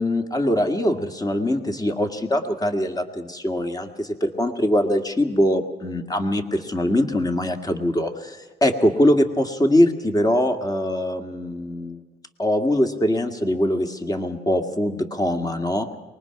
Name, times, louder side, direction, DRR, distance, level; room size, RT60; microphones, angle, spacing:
voice 1, 0.0-12.0 12.4-15.9, left 1 dB, 20° left, 5 dB, 2.0 m, -22 dB
23.5 x 20.5 x 6.0 m, 1.2 s
cardioid pair, 90°, 20 cm